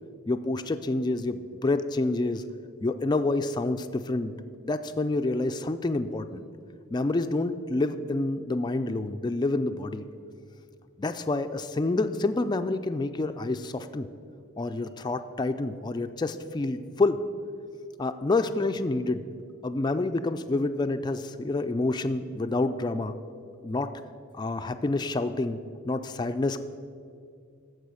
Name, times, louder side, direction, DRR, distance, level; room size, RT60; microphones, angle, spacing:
voice 1, 0.3-2.4 2.8-4.3 4.6-6.4 6.9-10.0 11.0-14.1 14.6-17.2 18.0-19.2 19.6-23.1 23.6-23.9 24.3-25.6 25.9-26.6, left 2 dB, 20° left, 8 dB, 0.3 m, -28 dB
14.0 x 4.8 x 6.3 m, 2.3 s
head